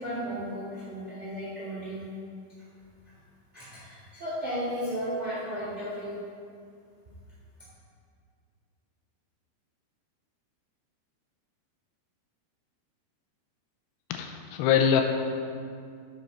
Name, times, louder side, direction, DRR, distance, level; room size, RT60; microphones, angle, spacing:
voice 1, 0.0-2.1 3.0-3.2 3.5-6.2, equal, 30° right, -8 dB, 1.2 m, -34 dB
voice 2, 14.1-15.0, left 8 dB, 85° left, 5 dB, 2.6 m, -23 dB
9.9 x 6.2 x 4.2 m, 2.2 s
omnidirectional pair, 4.9 m